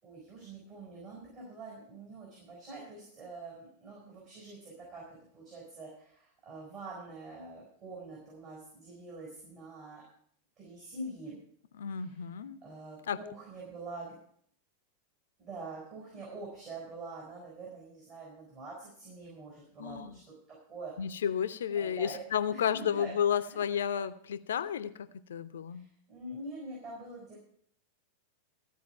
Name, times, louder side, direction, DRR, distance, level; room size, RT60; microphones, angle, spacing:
voice 1, 0.0-10.0 10.6-11.4 12.0-12.1 12.6-14.1 15.4-20.2 20.7-20.9 21.7-22.2 22.5-23.1 23.5-23.6 25.7-27.4, right 2 dB, 35° right, -4 dB, 5.7 m, -45 dB
voice 2, 11.7-12.6 13.1-13.2 19.8-20.2 21.0-25.9, left 8 dB, 65° left, 13 dB, 0.7 m, -32 dB
15.0 x 5.0 x 9.2 m, 0.64 s
figure-of-eight pair, 90°, 0 cm